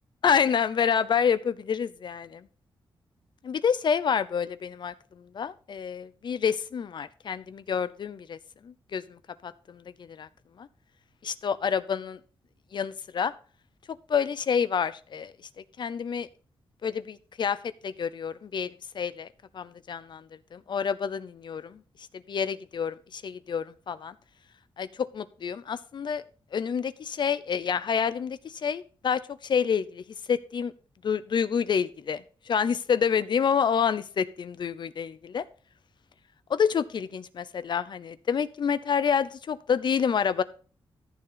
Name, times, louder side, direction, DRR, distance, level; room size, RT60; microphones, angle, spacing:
voice 1, 0.2-2.4 3.4-8.4 8.6-10.3 10.6-10.7 11.2-12.2 12.7-13.3 14.1-15.3 15.8-16.3 16.8-17.6 17.8-18.7 18.9-19.3 19.5-20.2 20.5-21.8 22.3-24.1 24.8-26.2 26.5-30.7 31.0-35.4 36.5-40.4, left 7 dB, 55° left, 15 dB, 0.7 m, -28 dB
14.0 x 6.9 x 3.9 m, 0.39 s
wide cardioid pair, 135°, 9 cm